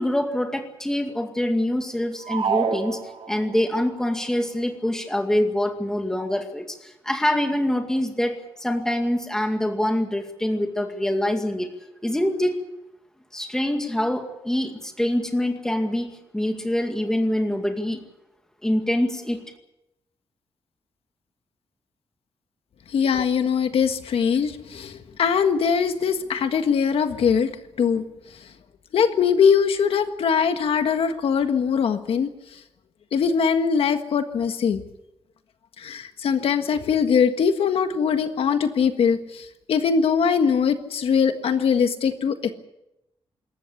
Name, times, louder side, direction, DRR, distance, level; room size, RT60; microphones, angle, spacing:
voice 1, 0.0-3.0 3.3-11.7 12.0-12.6 13.3-18.0 18.6-19.4, left 1 dB, 5° left, 5 dB, 2.2 m, -25 dB
sound 1, 2.2-3.7, right 6 dB, 65° right, 4.7 m, -27 dB
voice 2, 22.9-27.5 27.8-28.0 28.9-32.3 33.1-34.8 35.8-42.5, left 6 dB, 75° left, 8 dB, 1.6 m, -21 dB
27.0 x 14.0 x 8.5 m, 0.87 s
wide cardioid pair, 175°, 10 cm